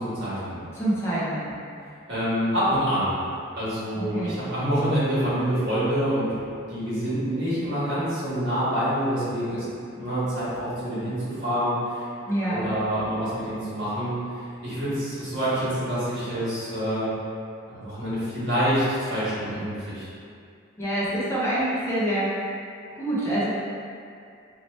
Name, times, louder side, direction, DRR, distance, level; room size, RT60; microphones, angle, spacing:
voice 1, 0.0-0.6 2.1-3.2 3.5-6.4 6.7-9.6 9.9-12.1 12.5-17.1 17.7-20.1, equal, 55° right, -11 dB, 1.4 m, -26 dB
voice 2, 0.7-1.5 4.0-4.4 12.3-12.6 20.8-22.3 23.0-23.5, right 1 dB, 15° left, -10 dB, 0.8 m, -26 dB
2.9 x 2.9 x 3.2 m, 2.4 s
head